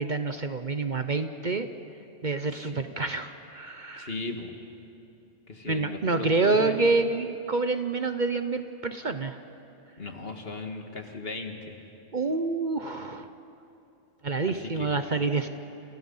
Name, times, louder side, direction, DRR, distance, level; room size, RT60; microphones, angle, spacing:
voice 1, 0.0-1.7 2.2-4.1 5.7-9.4 12.1-13.3 14.2-15.5, right 3 dB, 45° right, 8 dB, 0.9 m, -27 dB
voice 2, 2.5-2.8 3.9-4.5 5.5-6.9 10.0-11.8 14.4-15.1, left 3 dB, 55° left, 4 dB, 2.2 m, -37 dB
29.5 x 29.0 x 5.6 m, 2.8 s
omnidirectional pair, 1.2 m